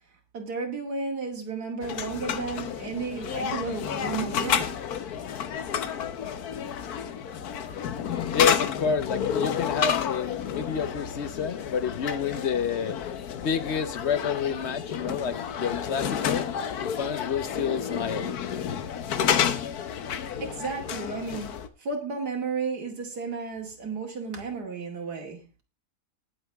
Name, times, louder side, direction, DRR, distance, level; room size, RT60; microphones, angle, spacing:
voice 1, 0.3-4.8 20.4-21.5 21.8-25.4, right 4 dB, 85° right, 2.8 m, -33 dB
sound 1, 1.8-21.7, left 8 dB, 75° left, 1.5 m, -30 dB
voice 2, 8.3-13.0 13.4-16.5 16.8-18.3, left 6 dB, 50° left, 0.9 m, -29 dB
19.5 x 7.1 x 3.5 m
omnidirectional pair, 1.7 m